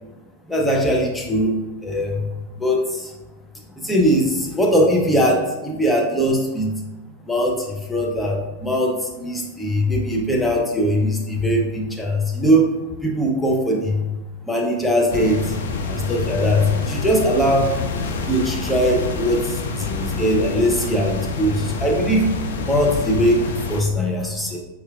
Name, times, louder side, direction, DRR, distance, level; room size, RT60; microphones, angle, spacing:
voice 1, 0.5-1.5 1.8-2.2 2.6-3.1 3.8-6.7 7.3-12.7 13.0-14.0 14.5-15.6 15.8-17.7 18.3-22.3 22.6-23.4 23.7-24.6, equal, 5° left, -2 dB, 0.6 m, -20 dB
sound 1, 15.1-23.8, left 3 dB, 60° left, 0.3 m, -27 dB
4.3 x 2.3 x 2.4 m, 1.1 s
figure-of-eight pair, 90°, 0 cm